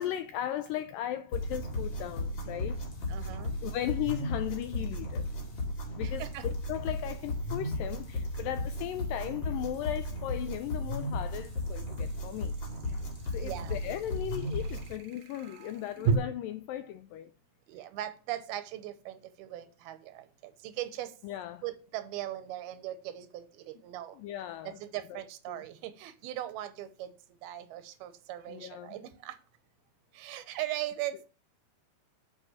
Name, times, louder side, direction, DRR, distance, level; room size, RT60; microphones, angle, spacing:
voice 1, 0.0-3.3 3.6-5.3 5.9-12.5 13.3-17.3 21.2-21.6 24.1-24.8 25.1-25.2 25.5-25.6 28.5-29.0, left 12 dB, 85° left, 2.0 m, -37 dB
sound 1, 1.3-14.9, left 1 dB, 35° left, 2.5 m, -35 dB
sound 2, 2.5-2.6 6.0-16.1, right 6 dB, 70° right, 3.1 m, -40 dB
voice 2, 3.1-3.5 6.0-6.4 13.4-13.8 17.7-20.2 20.6-21.1 21.6-24.1 24.6-27.1 27.4-29.3 30.2-31.3, right 13 dB, 90° right, 2.8 m, -39 dB
9.6 x 4.7 x 7.2 m
omnidirectional pair, 4.4 m